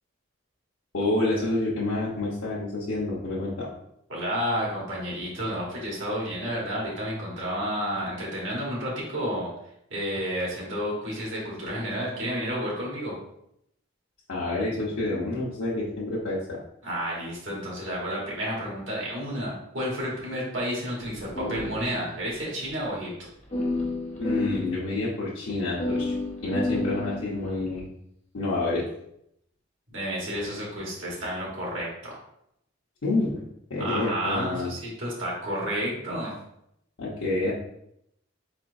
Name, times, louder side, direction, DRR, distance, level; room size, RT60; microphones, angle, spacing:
voice 1, 0.9-3.7 14.3-16.6 24.2-26.1 26.4-27.9 28.3-28.8 33.0-33.4 33.7-34.7 37.0-37.5, left 2 dB, 90° left, -8 dB, 0.9 m, -28 dB
voice 2, 4.1-9.5 9.9-13.2 16.8-23.1 29.9-32.2 33.8-36.4, equal, 65° right, -4 dB, 1.5 m, -31 dB
sound 1, 21.0-22.3 22.6-22.7 23.5-24.8 25.8-27.8, left 2 dB, 35° left, 0.8 m, -30 dB
4.3 x 3.9 x 2.6 m, 0.76 s
head